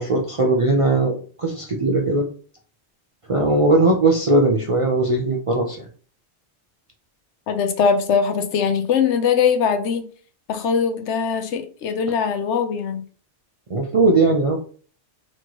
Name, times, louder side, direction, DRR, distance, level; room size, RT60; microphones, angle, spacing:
voice 1, 0.0-2.3 3.3-5.8 13.7-14.6, right 2 dB, 50° right, 1 dB, 0.4 m, -19 dB
voice 2, 7.5-10.0 10.5-13.0, left 6 dB, 80° left, 8 dB, 0.9 m, -21 dB
4.3 x 3.0 x 2.9 m, 0.43 s
omnidirectional pair, 1.2 m